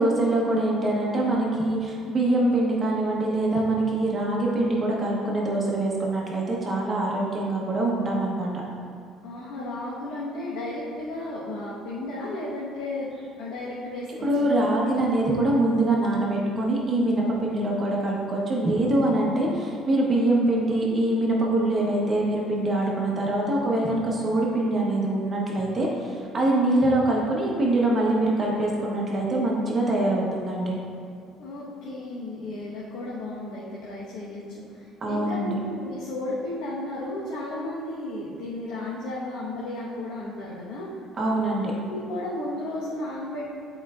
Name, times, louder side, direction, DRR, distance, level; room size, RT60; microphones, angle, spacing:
voice 1, 0.0-8.5 14.2-30.7 35.0-35.6 41.2-41.7, right 1 dB, 20° right, -3 dB, 1.0 m, -24 dB
voice 2, 9.2-13.1 13.4-14.5 31.4-34.4 34.7-40.9 41.9-43.4, left 2 dB, 85° left, -8 dB, 1.2 m, -34 dB
9.9 x 4.6 x 2.4 m, 2.2 s
cardioid pair, 175°, 0 cm